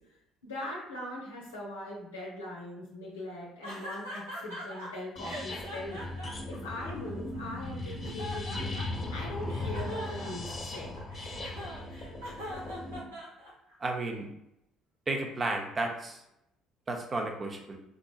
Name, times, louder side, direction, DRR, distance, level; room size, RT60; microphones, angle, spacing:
voice 1, 0.4-6.0 6.5-11.0, left 1 dB, 85° left, -4 dB, 0.6 m, -41 dB
sound 1, 3.6-4.9 5.2-7.4 7.8-9.1 9.5-13.7, equal, 85° right, 0.8 m, -41 dB
sound 2, 5.2-13.0, left 2 dB, 25° left, 0.9 m, -38 dB
voice 2, 13.8-14.3 15.1-16.2 16.9-17.8, right 2 dB, 35° right, 2 dB, 0.6 m, -32 dB
3.5 x 2.5 x 2.4 m, 0.80 s
hypercardioid pair, 55°, 0 cm